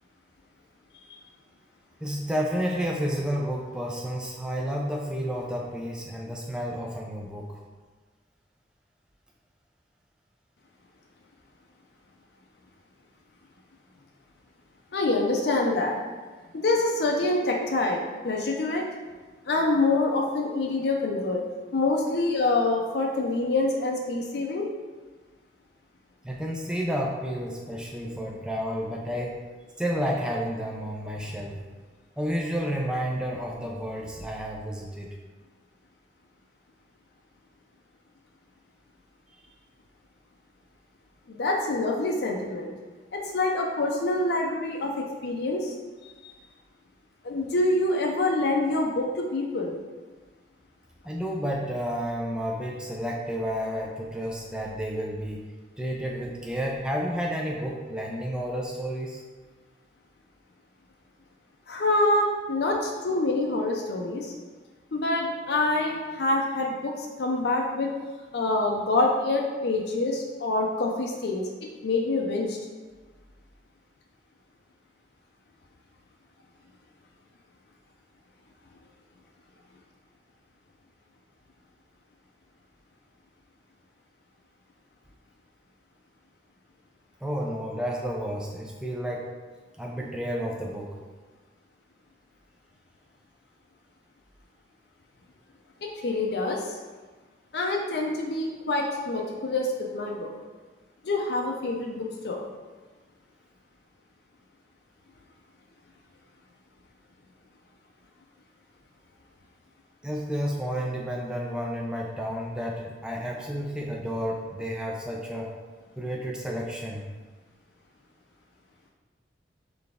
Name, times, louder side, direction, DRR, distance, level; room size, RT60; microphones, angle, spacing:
voice 1, 2.0-7.5 26.2-29.4 29.8-31.6 32.2-35.1 51.0-55.4 55.8-59.2 87.2-89.3 89.8-90.9 110.0-115.5 116.0-117.0, equal, 5° right, -2 dB, 0.4 m, -31 dB
voice 2, 14.9-16.0 16.5-18.8 19.5-21.4 21.7-24.7 41.3-42.7 43.1-45.7 46.2-46.3 47.2-49.7 61.7-64.3 64.9-67.9 68.3-71.5 71.8-72.6 95.8-96.8 97.5-100.3 101.0-102.4, left 2 dB, 65° left, 0 dB, 0.5 m, -26 dB
4.0 x 3.3 x 3.5 m, 1.4 s
head